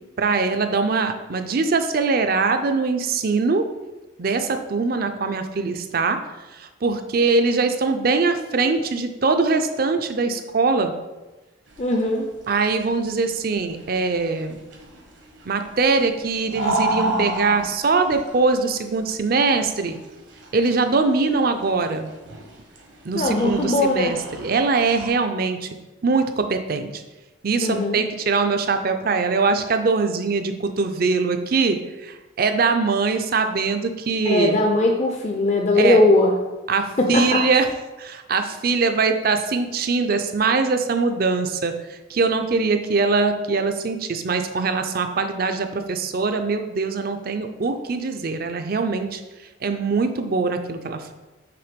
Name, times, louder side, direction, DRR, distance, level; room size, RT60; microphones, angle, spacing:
voice 1, 0.2-3.7 4.2-6.2 6.5-11.0 12.5-14.6 15.5-20.0 20.5-22.1 23.0-25.7 26.0-27.0 27.4-34.6 35.8-36.0 36.7-37.7 38.0-49.2 49.6-51.1, right 4 dB, 50° right, 7 dB, 0.5 m, -22 dB
sound 1, 11.7-25.1, right 1 dB, 70° right, 1.3 m, -32 dB
voice 2, 11.8-12.3 23.1-24.2 27.6-28.0 34.2-36.3 37.0-37.4, left 2 dB, 35° left, 1 dB, 0.5 m, -19 dB
5.9 x 3.5 x 5.1 m, 1.1 s
head